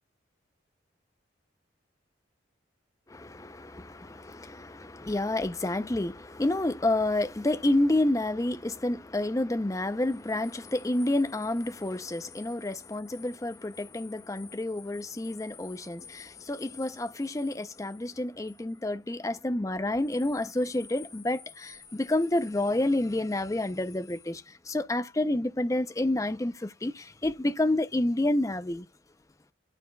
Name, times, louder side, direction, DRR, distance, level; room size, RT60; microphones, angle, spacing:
voice 1, 3.1-28.8, left 1 dB, 15° left, 0.5 m, -29 dB
sound 1, 9.8-19.1 20.0-24.3, left 8 dB, 65° left, 4.9 m, -53 dB
11.5 x 4.9 x 2.2 m
head